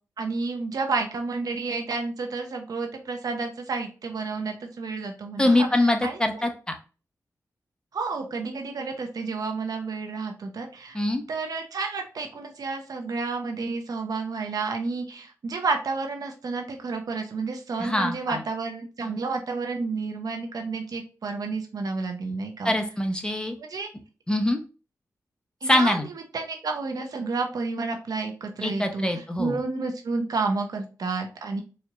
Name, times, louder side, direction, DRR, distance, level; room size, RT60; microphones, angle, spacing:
voice 1, 0.2-6.4 7.9-11.0 11.3-22.7 23.6-23.9 25.6-26.0 26.3-31.6, right 4 dB, 75° right, 4 dB, 0.8 m, -30 dB
voice 2, 5.4-6.5 10.9-11.2 17.8-18.4 22.6-23.5 24.3-24.6 25.6-26.1 28.6-29.6, left 1 dB, 15° left, 5 dB, 0.8 m, -23 dB
4.3 x 2.8 x 2.4 m, 0.34 s
cardioid pair, 50°, 7 cm